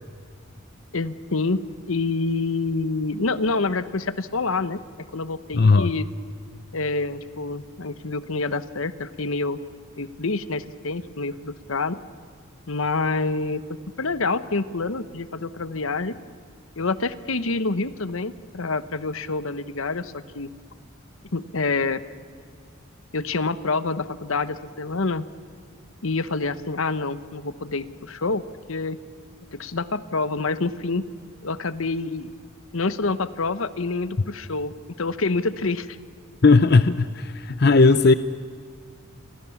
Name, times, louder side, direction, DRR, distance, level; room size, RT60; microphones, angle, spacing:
voice 1, 0.9-6.1 6.7-9.6 10.0-12.0 12.7-16.2 16.8-20.5 21.3-22.0 23.1-25.2 26.0-28.4 28.7-29.0 29.5-31.1 31.4-32.3 32.7-36.0, left 3 dB, 80° left, 14 dB, 1.1 m, -27 dB
voice 2, 5.5-5.9 36.4-38.1, left 3 dB, 50° left, 13 dB, 0.6 m, -16 dB
28.5 x 23.5 x 7.2 m, 2.2 s
head